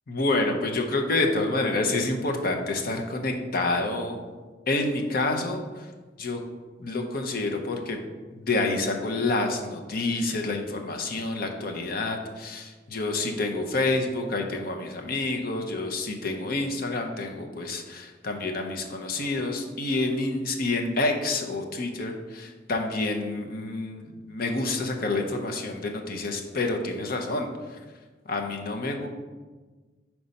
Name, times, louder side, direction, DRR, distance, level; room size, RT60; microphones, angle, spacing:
voice 1, 0.1-4.2 4.7-5.9 6.2-6.4 6.8-8.0 8.3-27.8 28.2-29.1, left 2 dB, 55° left, 3 dB, 0.7 m, -28 dB
4.6 x 4.2 x 5.2 m, 1.3 s
head